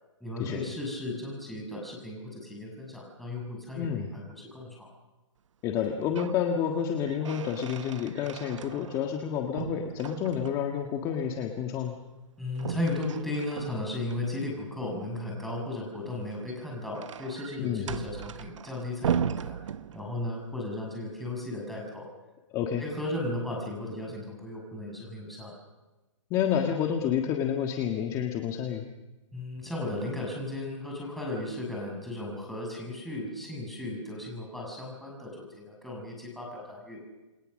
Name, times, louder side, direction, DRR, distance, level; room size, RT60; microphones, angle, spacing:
voice 1, 0.2-4.9 12.4-19.5 19.9-22.1 22.8-25.6 29.3-37.0, left 2 dB, ahead, -1 dB, 6.3 m, -35 dB
voice 2, 3.8-4.1 5.6-12.0 17.6-17.9 22.5-22.8 26.3-28.9, left 8 dB, 20° left, 4 dB, 1.7 m, -29 dB
sound 1, 5.8-6.4 6.8-9.2 9.6-10.8 12.6-14.2 16.2-20.4, right 8 dB, 75° right, 1.0 m, -37 dB
29.0 x 23.0 x 6.5 m, 1.1 s
hypercardioid pair, 160°, 16 cm